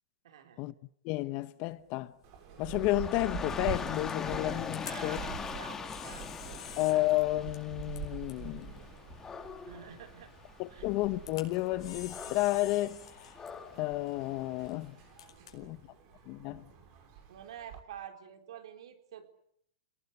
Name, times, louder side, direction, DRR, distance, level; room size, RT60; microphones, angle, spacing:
voice 1, 0.2-0.6 4.7-6.7 9.6-10.3 10.7-10.9 15.4-16.0 17.3-19.3, right 9 dB, 70° right, 3.9 m, -49 dB
voice 2, 1.0-2.1 2.6-5.2 6.8-8.8 10.6-13.4 13.7-15.0 15.5-15.8 16.3-16.7, left 18 dB, 40° left, 1.0 m, -31 dB
Camera, 1.7-17.1, left 9 dB, 75° left, 5.1 m, -52 dB
Uni Folie Elevator, 2.2-17.8, right 8 dB, 45° right, 5.9 m, -46 dB
Dog / Rain, 2.6-14.8, left 6 dB, 15° left, 2.1 m, -42 dB
29.5 x 18.5 x 8.3 m
hypercardioid pair, 140°, 3 cm